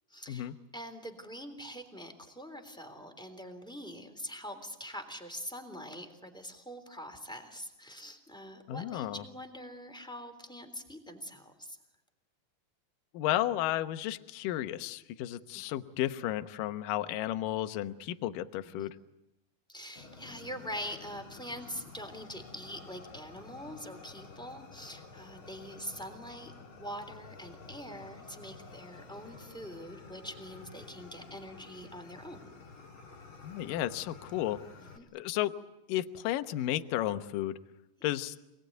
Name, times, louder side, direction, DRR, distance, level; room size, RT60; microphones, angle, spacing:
voice 1, 0.1-11.8 15.5-15.6 18.7-18.9 19.7-26.5 26.8-32.5 34.8-35.1, equal, ahead, 6 dB, 2.3 m, -44 dB
voice 2, 8.7-9.2 13.1-19.0 33.4-34.6 35.1-35.5 35.9-37.6 38.0-38.4, left 13 dB, 75° left, 9 dB, 2.1 m, -33 dB
Fire, 20.0-35.0, left 4 dB, 35° left, 2.9 m, -51 dB
28.0 x 20.5 x 9.4 m, 0.93 s
omnidirectional pair, 5.2 m